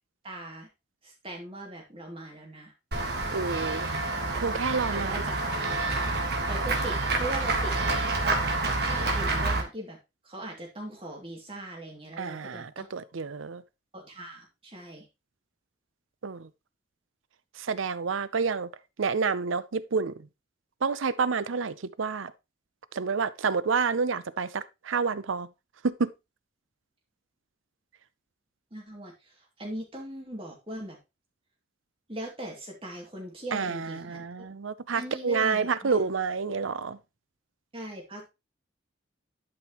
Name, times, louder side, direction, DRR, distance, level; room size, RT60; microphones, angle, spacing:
voice 1, 0.2-0.7 1.0-2.7 4.9-5.4 6.5-7.7 8.8-10.0 10.2-12.9 13.9-15.1 28.7-31.0 32.1-34.2 34.9-36.0 37.7-38.3, right 1 dB, 30° right, 2.6 m, -40 dB
Run / Walk footsteps / Bell, 2.9-9.6, right 2 dB, 55° right, 1.6 m, -28 dB
voice 2, 3.3-3.9 4.4-5.2 12.2-13.6 16.2-16.5 17.6-18.7 19.0-20.1 20.8-22.3 22.9-25.5 25.8-26.1 33.5-37.0, right 5 dB, 85° right, 0.6 m, -29 dB
11.5 x 5.3 x 3.0 m
head